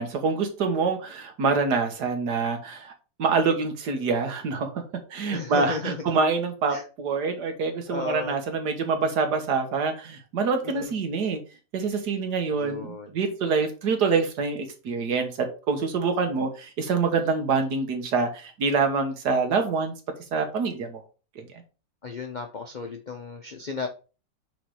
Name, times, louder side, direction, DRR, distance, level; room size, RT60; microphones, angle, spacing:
voice 1, 0.0-2.9 3.2-4.8 5.1-11.4 11.7-19.9 20.3-21.0 21.4-21.5, right 4 dB, 65° right, 6 dB, 1.7 m, -26 dB
voice 2, 5.3-6.0 6.7-6.8 7.9-8.4 10.6-10.9 12.5-13.2 22.0-23.9, left 4 dB, 60° left, 3 dB, 0.4 m, -34 dB
6.3 x 3.9 x 4.7 m, 0.34 s
omnidirectional pair, 1.9 m